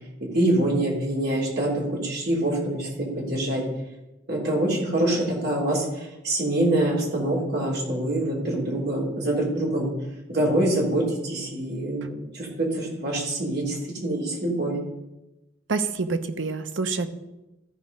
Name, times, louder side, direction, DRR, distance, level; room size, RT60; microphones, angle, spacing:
voice 1, 0.3-3.6 4.3-9.9 10.3-14.7, right 1 dB, 55° right, -2 dB, 3.2 m, -25 dB
voice 2, 15.7-17.1, right 4 dB, 75° right, 9 dB, 0.8 m, -27 dB
14.0 x 5.0 x 5.3 m, 0.97 s
head